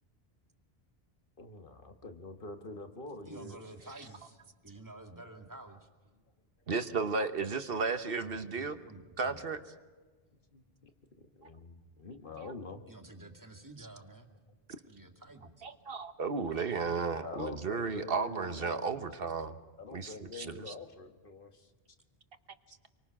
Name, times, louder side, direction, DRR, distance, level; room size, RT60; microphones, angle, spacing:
voice 1, 1.4-3.6 4.7-4.8 10.5-10.9 11.2-12.8 17.1-18.8 19.8-21.7, left 3 dB, 60° left, 6 dB, 1.7 m, -46 dB
voice 2, 3.2-5.9 8.2-9.4 12.9-14.3 14.9-15.6, right 2 dB, 20° right, 2 dB, 2.2 m, -50 dB
voice 3, 6.7-8.8 9.2-9.6 12.4-12.5 13.8-13.9 15.6-19.6 19.9-20.7, right 4 dB, 65° right, 10 dB, 1.3 m, -34 dB
27.0 x 23.5 x 6.1 m, 1.4 s
omnidirectional pair, 1.0 m